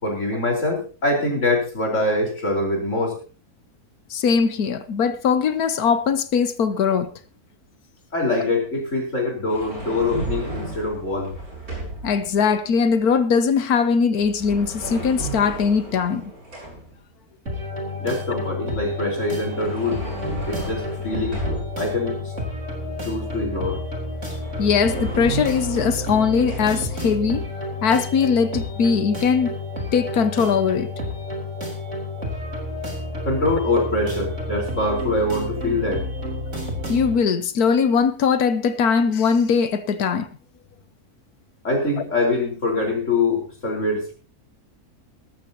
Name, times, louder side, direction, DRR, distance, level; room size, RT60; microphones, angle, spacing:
voice 1, 0.0-3.2 8.1-11.3 18.0-20.0 20.5-21.4 21.8-22.3 23.0-23.8 33.2-36.1 41.6-44.1, left 2 dB, 50° left, 4.9 m, -24 dB
voice 2, 4.1-7.1 12.0-16.3 24.6-27.5 27.8-29.5 29.9-30.9 36.9-40.3, left 6 dB, 80° left, 1.6 m, -20 dB
sound 1, 9.5-12.2 14.2-17.0 19.1-22.0 24.0-24.1 24.3-26.7, right 2 dB, 70° right, 7.8 m, -33 dB
sound 2, 17.5-37.2, left 1 dB, 50° right, 4.2 m, -30 dB
18.5 x 14.0 x 2.9 m
omnidirectional pair, 1.6 m